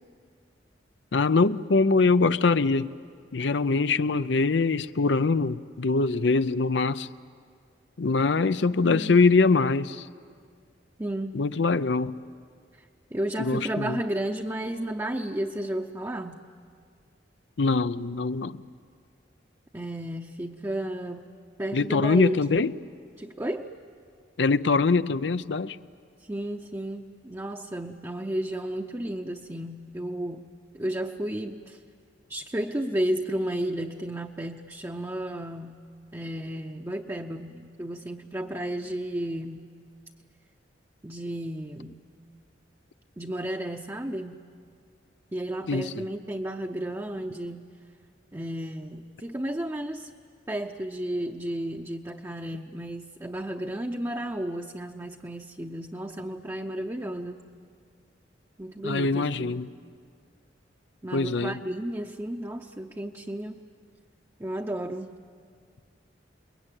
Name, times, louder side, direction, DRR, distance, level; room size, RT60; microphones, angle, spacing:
voice 1, 1.1-2.9 3.3-7.1 8.0-10.1 11.3-12.2 13.4-14.0 17.6-18.6 21.7-22.7 24.4-25.8 45.7-46.0 58.8-59.7 61.1-61.6, left 4 dB, 80° left, 0.6 m, -23 dB
voice 2, 8.8-9.2 11.0-11.4 13.1-16.4 19.7-21.3 21.6-22.4 23.2-23.7 26.2-31.8 32.3-35.8 36.1-39.7 41.0-42.0 43.2-44.4 45.3-47.6 48.3-50.1 50.5-57.4 58.6-59.6 61.0-63.6 64.4-65.1, right 1 dB, 15° right, 0.7 m, -33 dB
29.0 x 21.5 x 9.0 m
head